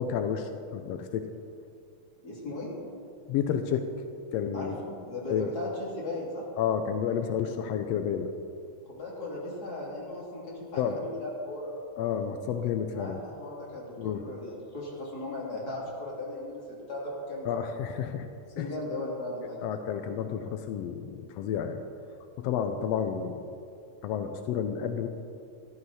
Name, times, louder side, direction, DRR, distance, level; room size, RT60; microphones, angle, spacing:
voice 1, 0.0-1.3 3.3-3.9 4.3-4.8 5.3-5.5 6.6-8.3 10.8-11.0 12.0-13.2 14.0-14.2 17.4-18.3 18.6-18.7 19.6-21.8 22.4-23.6 24.0-25.1, left 8 dB, 85° left, 7 dB, 1.4 m, -30 dB
voice 2, 2.2-2.7 4.5-6.5 8.9-11.7 12.9-17.7 18.6-19.6, left 1 dB, 30° left, -5 dB, 3.3 m, -37 dB
14.5 x 12.5 x 4.2 m, 2.4 s
omnidirectional pair, 3.6 m